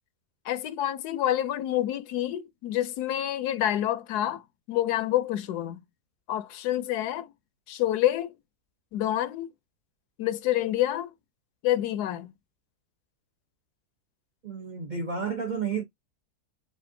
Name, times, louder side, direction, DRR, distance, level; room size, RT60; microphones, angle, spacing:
voice 1, 0.4-5.8 6.3-7.3 7.7-8.3 8.9-9.5 10.2-11.1 11.6-12.3, left 13 dB, 80° left, 1.1 m, -28 dB
voice 2, 14.4-15.8, right 5 dB, 55° right, 0.5 m, -31 dB
7.0 x 2.4 x 2.6 m
omnidirectional pair, 1.7 m